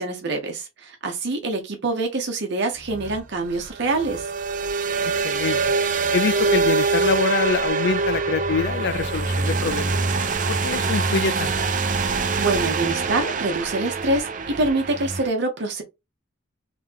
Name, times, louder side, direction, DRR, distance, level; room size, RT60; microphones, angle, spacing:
voice 1, 0.0-4.3 12.4-15.8, right 2 dB, 60° right, 1.0 m, -25 dB
sound 1, 2.9-15.3, right 4 dB, 40° right, 0.5 m, -24 dB
voice 2, 5.2-5.6 6.1-9.9 10.5-11.5, left 5 dB, 55° left, 0.4 m, -25 dB
sound 2, 8.2-13.4, left 2 dB, 35° left, 1.3 m, -44 dB
3.5 x 3.2 x 3.4 m
head